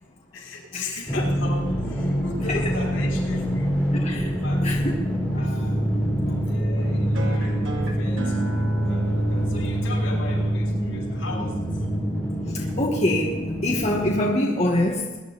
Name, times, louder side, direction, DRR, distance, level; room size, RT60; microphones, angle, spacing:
voice 1, 0.3-3.8 4.1-4.6 5.3-5.9 6.2-11.8, left 2 dB, 90° left, 0 dB, 5.9 m, -38 dB
sound 1, 1.1-14.2, equal, 10° left, 3.8 m, -25 dB
voice 2, 3.9-4.3 4.6-4.9 12.5-15.2, left 1 dB, 35° left, -1 dB, 1.5 m, -25 dB
sound 2, 7.1-12.1, right 1 dB, 85° right, 2.4 m, -37 dB
21.0 x 10.5 x 4.1 m, 1.2 s
head